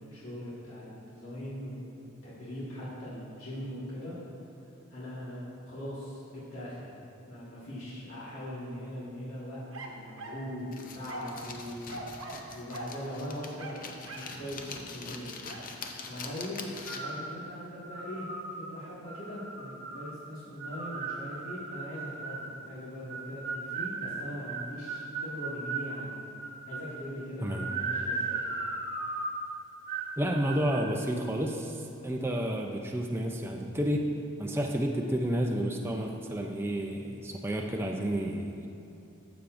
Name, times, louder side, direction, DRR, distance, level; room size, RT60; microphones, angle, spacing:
voice 1, 0.0-1.8 2.2-4.2 4.9-6.9 7.3-15.4 16.0-18.3 18.6-26.2 26.7-28.4, equal, 75° left, -9 dB, 1.8 m, -41 dB
sound 1, 9.7-10.5 11.1-11.4 11.9-12.5 12.7-13.0 13.6-14.4 15.5-15.7, right 2 dB, 75° right, 1.0 m, -42 dB
sound 2, 10.7-17.2, left 4 dB, 40° left, 0.6 m, -43 dB
sound 3, 16.9-17.3 17.8-18.4 19.1-20.0 20.6-22.5 23.1-25.9 26.4-27.0 27.4-29.4 29.9-30.2 30.4-30.9, right 4 dB, 45° right, 1.1 m, -36 dB
voice 2, 30.2-34.1 34.4-38.7, equal, 10° right, 1 dB, 0.5 m, -31 dB
14.0 x 7.0 x 2.6 m, 2.7 s
head